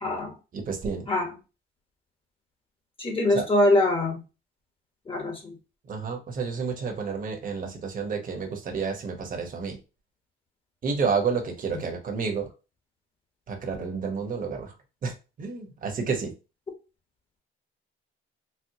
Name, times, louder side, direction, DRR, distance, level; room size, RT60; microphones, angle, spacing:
voice 1, 0.0-0.3 1.1-1.3 3.0-4.2 5.1-5.5, left 1 dB, 25° left, 2 dB, 0.9 m, -23 dB
voice 2, 0.5-1.1 3.3-3.5 5.9-9.8 10.8-12.5 13.5-14.7 15.0-16.3, right 5 dB, 40° right, 3 dB, 1.0 m, -30 dB
4.3 x 2.1 x 2.7 m, 0.30 s
cardioid pair, 125°, 21 cm